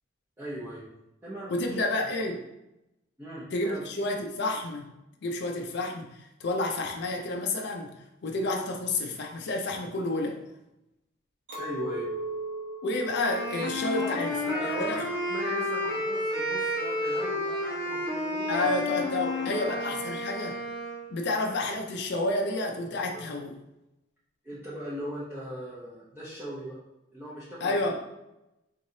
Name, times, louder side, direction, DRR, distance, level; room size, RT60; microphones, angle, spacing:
voice 1, 0.4-0.9 1.2-2.3 3.2-3.9 11.6-12.1 13.9-18.7 19.1-19.8 23.1-23.3 24.4-26.8 27.1-27.9, right 1 dB, 10° right, -9 dB, 0.6 m, -39 dB
voice 2, 1.5-2.4 3.5-4.9 5.2-7.9 8.2-10.4 12.8-15.0 18.5-20.6 21.1-23.6 27.6-28.0, left 2 dB, 55° left, 2 dB, 0.4 m, -30 dB
Chink clink, 11.5-16.9, right 2 dB, 60° right, 1.0 m, -39 dB
Wind instrument woodwind instrument, 13.2-21.1, left 1 dB, 20° left, 1.2 m, -31 dB
3.7 x 3.1 x 2.7 m, 0.91 s
head